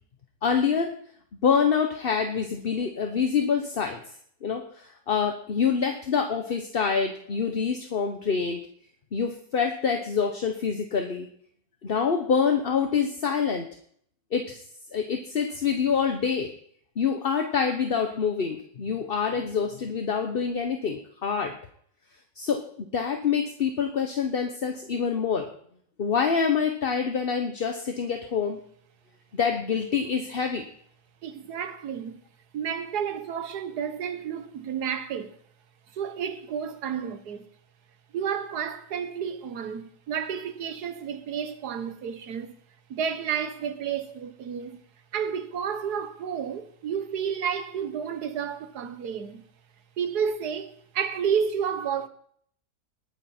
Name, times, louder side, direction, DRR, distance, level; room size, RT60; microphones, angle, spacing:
voice 1, 0.4-0.9 1.4-4.0 4.4-8.6 9.1-11.3 11.8-13.7 14.3-14.6 14.9-16.5 17.0-21.6 22.4-25.5 26.0-28.6 29.3-30.7, left 6 dB, 40° left, 1.0 m, -26 dB
voice 2, 31.2-32.2 32.5-35.4 35.9-37.5 38.1-42.6 42.9-44.8 45.1-49.4 50.0-52.1, right 7 dB, 70° right, 1.6 m, -31 dB
20.0 x 8.8 x 4.4 m
omnidirectional pair, 1.8 m